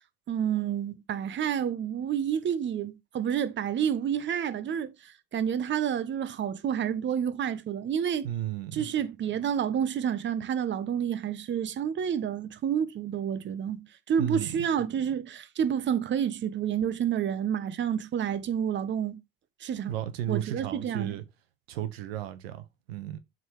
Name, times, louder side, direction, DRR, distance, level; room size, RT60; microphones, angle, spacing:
voice 1, 0.3-8.3 8.7-19.2 19.6-19.9 20.3-21.2, right 8 dB, 40° right, 1.2 m, -29 dB
voice 2, 8.2-8.8 14.2-14.5 19.9-21.2 21.7-23.2, right 11 dB, 80° right, 1.2 m, -34 dB
7.8 x 4.0 x 4.8 m
hypercardioid pair, 80°, 30 cm